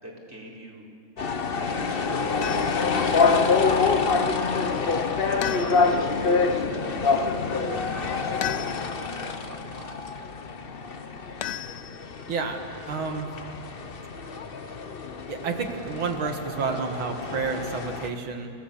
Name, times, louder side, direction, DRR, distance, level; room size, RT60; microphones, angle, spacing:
voice 1, 0.0-0.9 1.5-2.4 3.0-4.7 5.1-7.0 7.4-10.0, right 1 dB, 5° right, -4 dB, 4.2 m, -42 dB
sound 1, 1.2-18.1, left 4 dB, 40° left, 0.8 m, -26 dB
sound 2, 2.4-2.9 5.4-6.1 8.4-9.1 11.4-12.3, left 11 dB, 70° left, 1.3 m, -35 dB
voice 2, 12.3-12.6 12.9-13.3 15.3-18.5, right 4 dB, 90° right, 3 dB, 2.5 m, -30 dB
30.0 x 18.0 x 7.1 m, 2.6 s
omnidirectional pair, 2.2 m